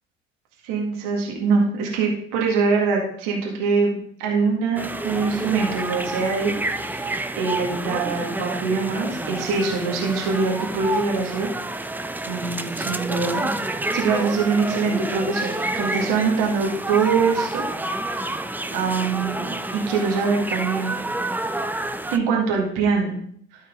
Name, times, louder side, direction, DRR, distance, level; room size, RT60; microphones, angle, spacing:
voice 1, 0.6-11.5 12.3-13.5 13.9-17.7 18.1-18.3 18.7-21.0 22.1-23.2, right 4 dB, 65° right, -1 dB, 2.1 m, -23 dB
sound 1, 4.8-22.2, right 2 dB, 5° right, 0.5 m, -29 dB
12.5 x 4.4 x 3.7 m, 0.64 s
hypercardioid pair, 60°, 34 cm